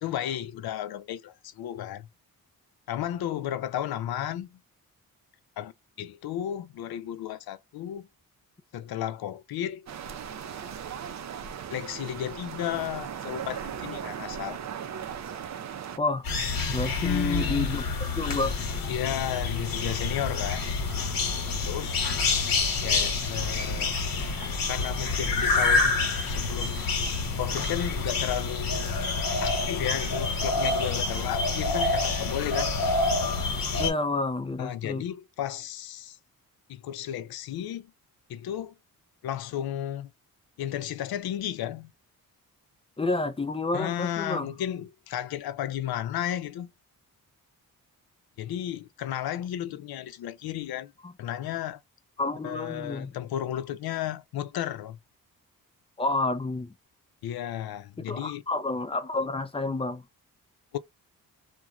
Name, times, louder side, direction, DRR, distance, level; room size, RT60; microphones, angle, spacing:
voice 1, 0.0-2.1 2.9-4.6 5.6-5.7 6.0-8.1 8.7-9.9 11.7-14.6 17.0-17.8 18.9-20.6 21.6-22.2 22.8-24.0 24.7-26.8 27.4-29.0 29.4-32.8 34.6-36.2 36.7-37.9 38.3-38.7 39.2-40.1 40.6-41.9 43.7-46.7 48.4-50.9 51.2-51.8 52.4-55.0 57.2-58.4 60.7-60.8, left 11 dB, 85° left, 0.5 m, -33 dB
sound 1, 9.9-16.0, right 8 dB, 50° right, 0.5 m, -38 dB
sound 2, 16.2-33.9, left 3 dB, 70° left, 1.2 m, -27 dB
voice 2, 16.7-17.8 18.2-18.6 33.8-35.0 43.0-44.5 51.0-51.1 52.2-53.1 56.0-56.7 58.0-60.0, left 3 dB, 15° left, 0.4 m, -29 dB
2.5 x 2.2 x 2.9 m
cardioid pair, 95°, 36 cm